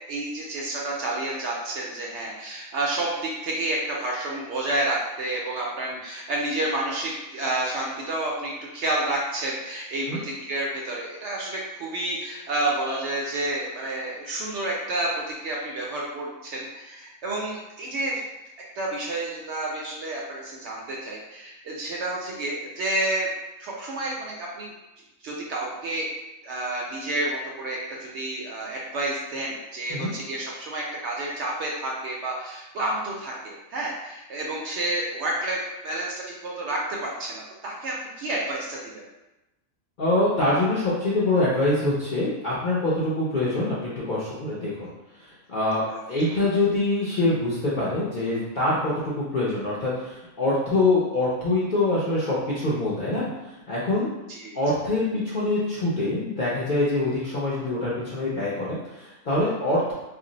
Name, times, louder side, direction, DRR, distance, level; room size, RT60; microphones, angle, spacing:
voice 1, 0.1-18.2 18.8-23.3 23.6-24.7 25.2-26.1 26.4-38.9 45.9-46.0 46.3-46.5 54.3-54.6, right 2 dB, 65° right, -3 dB, 0.7 m, -30 dB
voice 2, 40.0-44.9 45.5-45.8 46.1-53.3 53.7-54.1 54.5-59.9, left 2 dB, 55° left, -8 dB, 0.5 m, -24 dB
2.5 x 2.0 x 3.8 m, 1.0 s
omnidirectional pair, 1.5 m